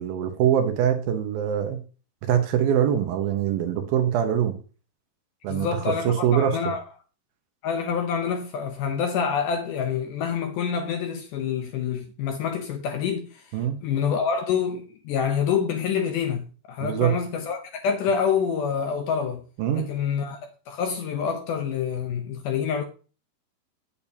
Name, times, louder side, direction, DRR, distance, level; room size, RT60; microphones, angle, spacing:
voice 1, 0.0-1.8 2.2-4.6 5.4-6.6 13.5-13.8 16.8-17.1 19.6-19.9, right 9 dB, 75° right, 2.7 m, -23 dB
voice 2, 5.5-6.8 7.6-19.4 19.7-20.4 20.7-22.8, left 7 dB, 75° left, 2.0 m, -27 dB
8.6 x 8.5 x 2.8 m
omnidirectional pair, 4.4 m